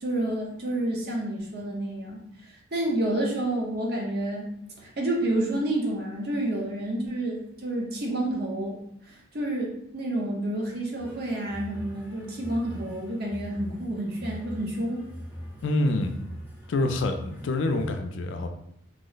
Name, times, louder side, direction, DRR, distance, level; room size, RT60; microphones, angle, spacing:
voice 1, 0.0-2.2 2.7-4.5 4.8-8.7 9.0-15.1, right 1 dB, 50° right, -2 dB, 0.7 m, -29 dB
sound 1, 11.0-17.9, equal, 10° right, 0.4 m, -42 dB
voice 2, 15.6-16.1 16.7-18.5, left 2 dB, 65° left, 6 dB, 0.4 m, -26 dB
3.0 x 2.0 x 3.9 m, 0.73 s
head